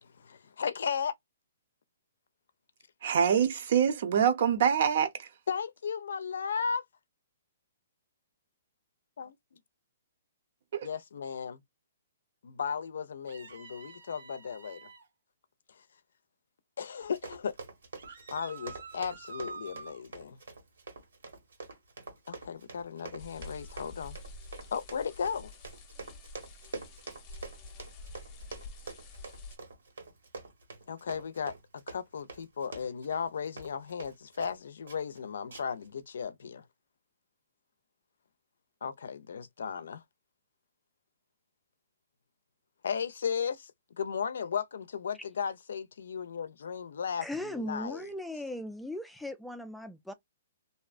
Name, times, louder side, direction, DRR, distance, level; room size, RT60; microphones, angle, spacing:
voice 1, 0.0-1.1 5.5-6.8 9.2-9.3 10.8-11.6 12.4-14.8 16.8-17.5 18.3-20.4 22.3-24.2 24.7-25.5 30.9-36.6 38.8-40.0 42.8-43.7 44.0-48.0, left 6 dB, 75° left, 0.4 m, -35 dB
voice 2, 3.0-5.4 10.7-10.9, right 8 dB, 55° right, 0.7 m, -25 dB
sound 1, 13.3-15.1 18.0-20.0, right 4 dB, 75° right, 1.2 m, -47 dB
Run, 17.0-34.6 34.9-35.2 35.5-35.9 36.2-36.3, right 4 dB, 90° right, 1.5 m, -46 dB
sound 2, 23.2-29.6, left 2 dB, 25° left, 0.7 m, -48 dB
voice 3, 47.2-50.1, left 1 dB, ahead, 0.3 m, -38 dB
2.7 x 2.1 x 2.4 m
hypercardioid pair, 155°, 0 cm